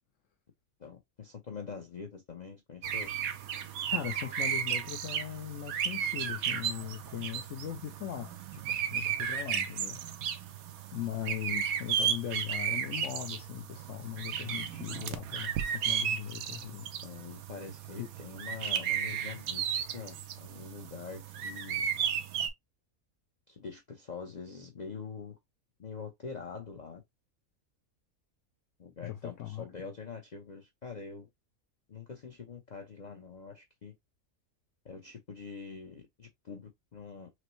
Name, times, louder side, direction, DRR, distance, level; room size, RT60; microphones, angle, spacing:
voice 1, 0.8-3.1 17.0-21.9 23.5-25.4 25.8-27.0 28.8-31.3 31.9-33.9 34.8-37.3, left 5 dB, 45° left, 0.6 m, -44 dB
sound 1, 2.8-22.5, right 8 dB, 85° right, 1.1 m, -34 dB
voice 2, 3.9-8.6 8.9-10.0 10.9-16.9 18.0-18.1 29.0-29.8, left 11 dB, 65° left, 1.0 m, -39 dB
6.0 x 2.1 x 3.0 m
omnidirectional pair, 1.5 m